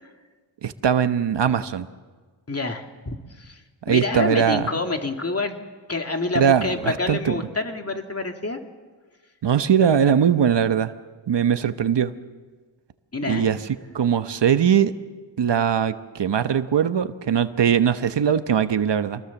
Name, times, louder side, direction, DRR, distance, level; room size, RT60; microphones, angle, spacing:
voice 1, 0.6-1.9 3.9-4.7 6.3-7.3 9.4-10.9 11.3-12.1 13.3-13.6 13.9-14.9 15.4-19.2, right 8 dB, 65° right, 11 dB, 1.1 m, -20 dB
voice 2, 2.5-3.6 3.9-5.6 5.9-8.6 13.1-13.5, left 3 dB, 30° left, 4 dB, 2.4 m, -27 dB
26.5 x 20.5 x 7.2 m, 1.4 s
cardioid pair, 75°, 46 cm